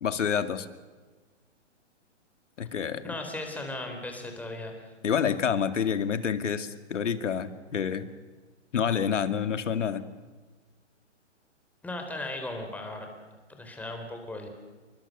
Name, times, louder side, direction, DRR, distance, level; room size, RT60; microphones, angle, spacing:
voice 1, 0.0-0.7 2.6-3.0 5.0-8.1 8.7-10.0, left 7 dB, 80° left, 10 dB, 2.3 m, -28 dB
voice 2, 3.0-4.9 11.8-13.1 13.5-14.5, left 2 dB, 5° left, 3 dB, 4.1 m, -37 dB
29.0 x 24.0 x 6.8 m, 1.3 s
hypercardioid pair, 145°, 36 cm